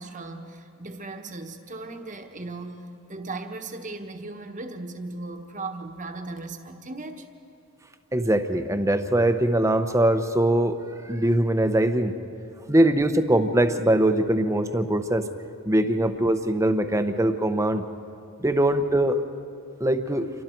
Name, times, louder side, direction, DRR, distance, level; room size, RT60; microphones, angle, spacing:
voice 1, 0.0-7.3, right 2 dB, 35° right, 5 dB, 1.3 m, -37 dB
voice 2, 8.1-12.2 12.7-15.3 15.7-17.8 18.4-19.2 19.8-20.3, right 1 dB, 15° right, 8 dB, 0.8 m, -22 dB
28.0 x 23.0 x 4.6 m, 2.5 s
head